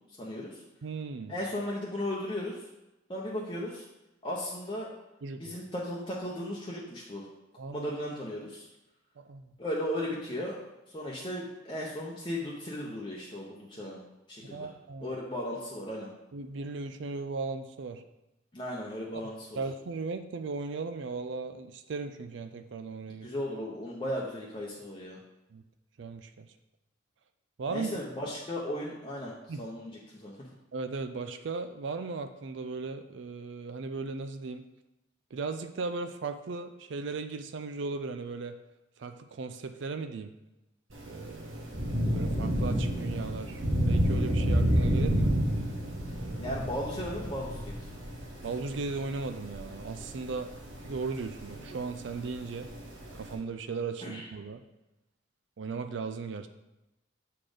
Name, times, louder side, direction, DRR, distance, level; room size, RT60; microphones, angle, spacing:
voice 1, 0.2-0.6 1.3-2.6 3.1-3.8 4.2-4.9 5.4-7.2 7.7-8.7 9.6-14.0 14.3-14.7 15.0-16.1 18.5-19.6 23.2-25.2 27.7-30.3 46.4-47.7 54.0-54.3, left 1 dB, 25° left, -4 dB, 0.8 m, -36 dB
voice 2, 0.8-1.3 5.2-5.4 7.6-7.9 9.3-9.4 14.4-15.2 16.3-18.0 19.6-23.3 25.5-25.6 26.0-26.5 27.6-27.9 29.5-29.6 30.7-34.7 35.3-38.6 39.0-40.3 41.0-45.3 46.2-46.6 48.4-50.5 50.8-52.7 53.1-54.6 55.6-56.5, right 4 dB, 65° right, 9 dB, 0.4 m, -37 dB
Thunder / Rain, 40.9-53.3, equal, 80° right, 1.6 m, -30 dB
7.5 x 4.2 x 5.0 m, 0.97 s
head